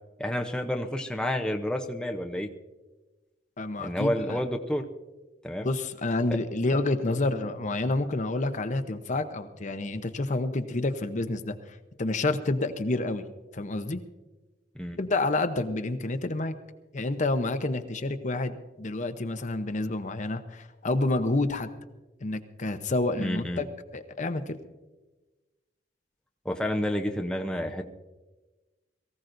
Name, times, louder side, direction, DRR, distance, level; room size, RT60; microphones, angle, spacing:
voice 1, 0.2-2.5 3.8-4.8 5.4-5.7 14.8-15.0 23.2-23.7 26.4-27.9, left 1 dB, 5° left, 2 dB, 0.7 m, -30 dB
voice 2, 3.6-4.4 5.6-11.6 12.0-13.2 13.5-14.0 15.0-16.5 16.9-21.7 22.2-23.7 23.9-24.6, left 2 dB, 45° left, 9 dB, 0.8 m, -29 dB
22.5 x 15.5 x 2.6 m, 1.2 s
head